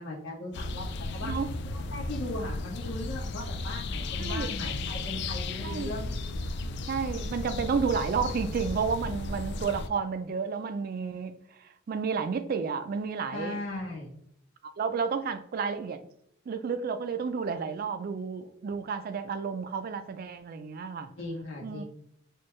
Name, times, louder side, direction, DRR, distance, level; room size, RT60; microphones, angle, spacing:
voice 1, 0.0-1.3 1.9-6.1 13.3-14.1 21.2-21.8, left 1 dB, 80° left, 1.1 m, -38 dB
sound 1, 0.5-9.9, left 2 dB, 60° left, 0.3 m, -34 dB
voice 2, 4.2-4.5 5.6-6.0 6.9-11.4 11.9-13.6 14.8-16.0 16.5-21.1 21.6-21.8, right 5 dB, 50° right, 0.3 m, -31 dB
4.3 x 2.3 x 3.1 m
head